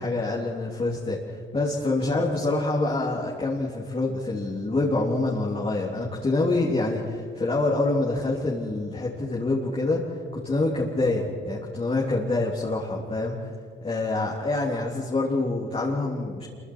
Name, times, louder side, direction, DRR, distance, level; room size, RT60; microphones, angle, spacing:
voice 1, 0.0-13.3 13.8-16.5, left 2 dB, 30° left, -4 dB, 3.7 m, -26 dB
27.5 x 24.0 x 4.9 m, 2.2 s
cardioid pair, 90°, 20 cm